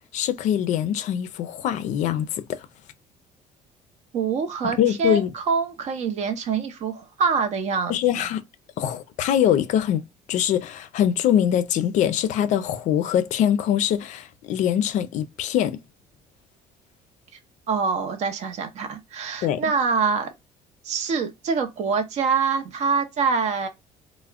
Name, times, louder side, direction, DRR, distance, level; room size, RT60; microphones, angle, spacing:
voice 1, 0.1-2.6 4.8-5.3 7.9-8.4 8.8-10.0 10.3-15.8 19.4-19.6, left 10 dB, 60° left, 0.4 m, -23 dB
voice 2, 4.1-8.0 17.7-20.3 20.8-23.7, right 5 dB, 55° right, 0.6 m, -25 dB
2.3 x 2.0 x 3.4 m
cardioid pair, 125°, 14 cm